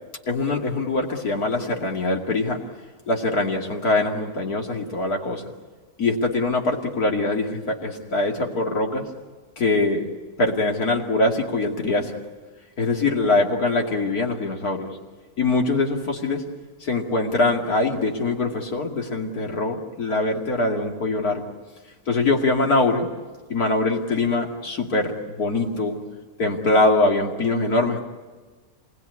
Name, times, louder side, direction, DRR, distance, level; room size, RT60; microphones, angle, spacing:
voice 1, 0.3-2.6 3.1-5.4 6.0-9.1 9.6-10.1 10.4-12.1 12.8-15.0 15.4-16.4 16.8-21.4 22.1-23.1 23.5-26.0 26.4-28.0, left 2 dB, 90° left, 1 dB, 3.0 m, -23 dB
26.5 x 20.5 x 9.5 m, 1.4 s
omnidirectional pair, 1.5 m